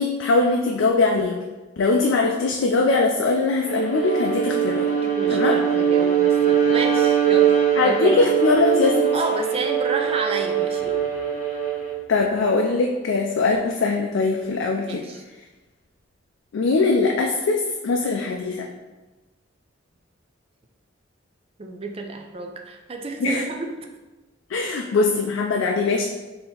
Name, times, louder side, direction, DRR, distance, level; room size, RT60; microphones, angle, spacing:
voice 1, 0.0-1.4 1.8-4.9 5.3-5.6 7.8-9.1 12.1-15.0 16.5-18.7 23.2-23.4 24.5-26.0, left 3 dB, 80° left, 1 dB, 0.4 m, -21 dB
Bowed string instrument, 3.6-12.0, right 8 dB, 40° left, 0.9 m, -21 dB
voice 2, 5.0-7.5 7.8-8.2 9.1-11.0 14.9-15.2 21.6-23.9, right 3 dB, 30° right, 3 dB, 0.4 m, -30 dB
4.0 x 2.8 x 3.8 m, 1.2 s
head